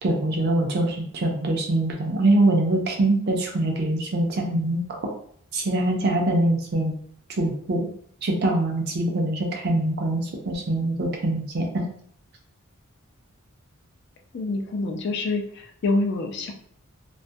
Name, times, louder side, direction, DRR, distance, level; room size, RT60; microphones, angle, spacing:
voice 1, 0.0-4.8 5.5-6.9 7.4-7.9 8.2-11.9, right 1 dB, 50° right, 1 dB, 0.4 m, -23 dB
voice 2, 14.3-16.5, left 2 dB, 50° left, 2 dB, 0.3 m, -26 dB
2.3 x 2.1 x 2.6 m, 0.62 s
head